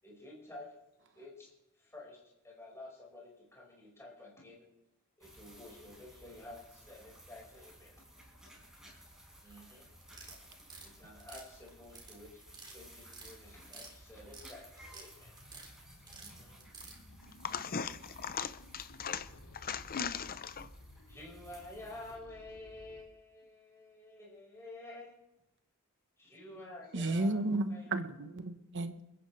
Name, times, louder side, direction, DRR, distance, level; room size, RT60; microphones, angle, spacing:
voice 1, 0.0-0.7 1.1-2.2 2.4-4.6 5.2-7.9 9.4-9.9 10.8-15.5 16.0-16.6 21.1-25.2 26.2-27.9, left 2 dB, 15° left, 5.1 m, -51 dB
sound 1, 5.2-22.2, equal, 5° right, 5.2 m, -57 dB
sound 2, 10.0-10.9 11.2-12.1 12.4-12.7 13.0-13.9 14.2-15.1 15.4-15.7 16.1-17.0, right 3 dB, 20° right, 3.7 m, -50 dB
sound 3, 15.1-23.0, left 1 dB, 80° left, 1.6 m, -58 dB
voice 2, 17.4-20.7, left 6 dB, 40° left, 0.7 m, -39 dB
voice 3, 26.9-29.0, right 2 dB, 55° right, 1.1 m, -33 dB
28.5 x 10.5 x 3.3 m
head